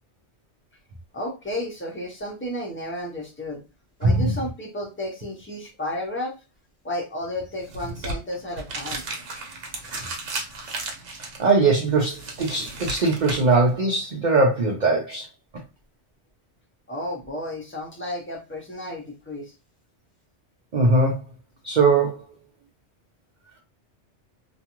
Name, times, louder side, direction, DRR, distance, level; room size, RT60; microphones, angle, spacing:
voice 1, 1.1-3.6 4.0-6.4 6.8-9.1 16.9-19.5, left 1 dB, 15° left, 0 dB, 0.6 m, -32 dB
voice 2, 4.0-4.3 11.4-15.3 20.7-21.2 21.6-22.3, right 3 dB, 50° right, -1 dB, 0.6 m, -20 dB
sound 1, 7.6-13.7, right 3 dB, 80° right, 1.1 m, -35 dB
2.5 x 2.3 x 2.9 m, 0.29 s
omnidirectional pair, 1.2 m